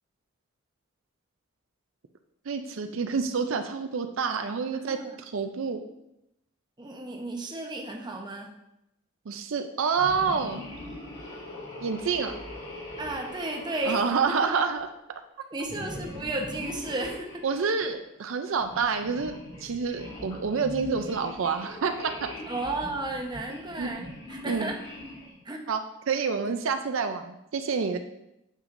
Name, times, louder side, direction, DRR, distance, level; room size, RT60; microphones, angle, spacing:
voice 1, 2.5-5.8 9.3-10.6 11.8-12.4 13.9-15.2 17.4-19.3 19.6-22.3 23.8-23.9 24.4-24.7 25.7-28.0, right 5 dB, 65° right, 7 dB, 0.5 m, -28 dB
voice 2, 6.8-8.5 13.0-14.0 14.4-14.5 15.5-17.3 22.5-24.8 25.5-25.6, right 2 dB, 20° right, 1 dB, 0.8 m, -33 dB
sound 1, 9.9-14.8 15.6-17.9 18.6-25.4, left 1 dB, 50° left, 2.9 m, -42 dB
8.9 x 6.8 x 2.6 m, 0.86 s
head